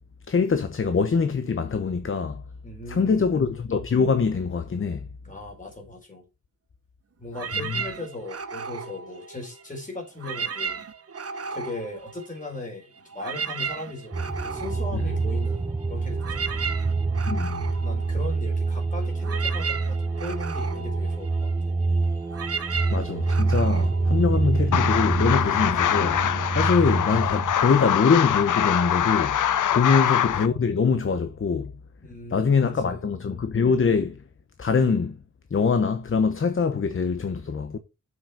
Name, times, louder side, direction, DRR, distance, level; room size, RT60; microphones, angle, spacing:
voice 1, 0.3-2.4 2.9-5.1 7.6-7.8 14.9-15.0 17.3-17.7 22.9-29.4 29.7-31.7 32.3-34.2 34.6-35.2 35.5-37.8, left 5 dB, 40° left, 0.9 m, -23 dB
voice 2, 2.6-3.4 5.2-6.3 7.2-10.8 11.5-16.6 17.8-21.5 29.8-30.1 32.0-33.0, left 2 dB, 25° left, 4.5 m, -38 dB
sound 1, 7.3-9.8 10.1-12.7 13.0-24.9, right 5 dB, 50° right, 1.0 m, -35 dB
sound 2, 14.1-27.5, right 3 dB, 10° right, 0.4 m, -26 dB
sound 3, 24.7-30.5, left 10 dB, 80° left, 0.6 m, -23 dB
7.6 x 6.0 x 5.8 m
wide cardioid pair, 130°, 31 cm